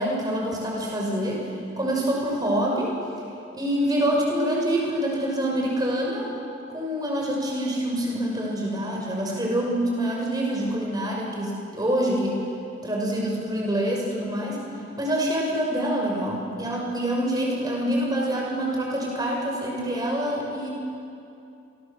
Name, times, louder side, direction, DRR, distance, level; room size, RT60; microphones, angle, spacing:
voice 1, 0.0-1.4 1.8-2.9 3.5-6.3 6.7-12.4 12.8-14.6 15.0-20.7, right 1 dB, 20° right, -1 dB, 6.0 m, -26 dB
30.0 x 24.0 x 7.2 m, 2.6 s
head